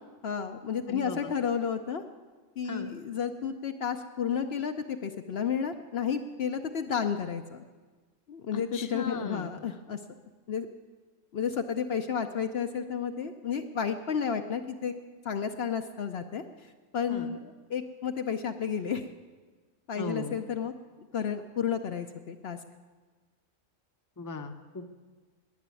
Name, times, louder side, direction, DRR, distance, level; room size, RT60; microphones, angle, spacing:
voice 1, 0.2-2.0 2.6-7.6 8.3-10.0 10.5-10.7 11.3-14.9 15.2-19.1 19.9-20.7 21.1-22.6, left 7 dB, 60° left, 6 dB, 0.8 m, -32 dB
voice 2, 0.9-1.3 2.6-2.9 8.5-9.5 17.1-17.4 20.0-20.4 24.2-24.9, left 3 dB, 20° left, 6 dB, 0.7 m, -37 dB
11.0 x 10.0 x 9.5 m, 1.4 s
omnidirectional pair, 1.3 m